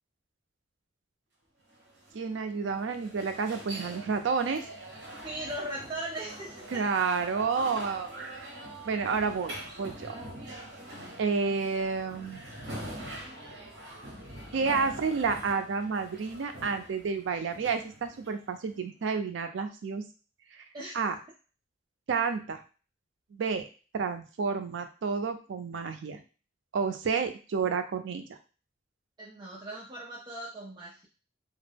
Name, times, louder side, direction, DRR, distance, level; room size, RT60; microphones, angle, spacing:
sound 1, 1.7-18.7, right 1 dB, 65° right, 0.8 m, -44 dB
voice 1, 2.1-4.6 6.7-8.5 8.9-10.1 11.2-12.4 14.5-20.0 20.9-21.1 22.1-22.6 23.3-23.6 23.9-26.2 26.7-28.3, right 5 dB, 80° right, 7 dB, 0.4 m, -30 dB
voice 2, 5.2-6.9 20.7-20.9 29.2-31.1, right 1 dB, 25° right, -5 dB, 0.4 m, -38 dB
2.3 x 2.0 x 3.3 m, 0.35 s
head